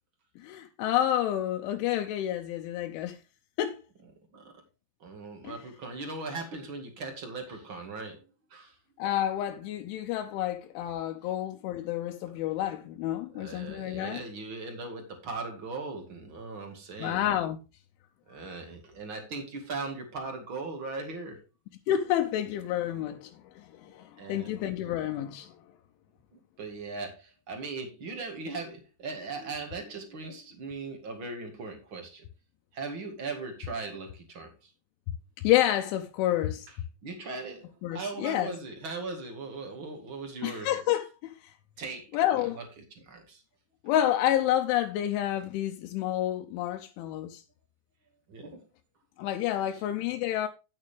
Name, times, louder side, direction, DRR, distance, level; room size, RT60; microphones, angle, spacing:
voice 1, 0.4-3.2 3.6-3.8 5.4-5.6 9.0-14.2 17.0-17.6 21.9-23.3 23.6-25.6 35.4-36.7 37.8-38.5 40.4-41.3 42.1-42.6 43.8-47.4 49.2-50.5, left 12 dB, 80° left, 3.1 m, -29 dB
voice 2, 5.0-8.2 8.5-8.7 13.3-17.2 18.3-21.4 24.2-24.5 26.6-32.2 32.7-34.5 37.0-40.7 41.8-42.6 43.0-43.4 48.3-48.6, right 3 dB, 55° right, 1.4 m, -39 dB
9.7 x 8.9 x 3.5 m
omnidirectional pair, 5.6 m